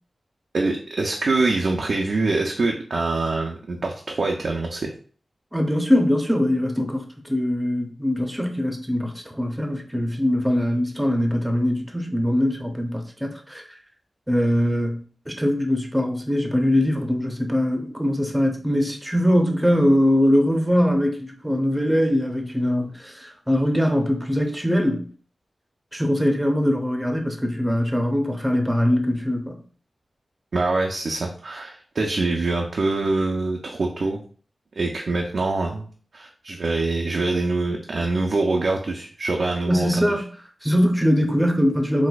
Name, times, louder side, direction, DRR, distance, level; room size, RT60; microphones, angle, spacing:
voice 1, 0.5-4.9 30.5-34.2 34.8-35.9 36.1-40.1, right 3 dB, 75° right, 0.4 m, -24 dB
voice 2, 5.5-13.6 14.3-15.0 15.3-25.1 25.9-29.6 39.7-40.2 40.6-42.1, equal, 5° right, 0.6 m, -22 dB
4.0 x 2.5 x 2.3 m
cardioid pair, 50°, 0 cm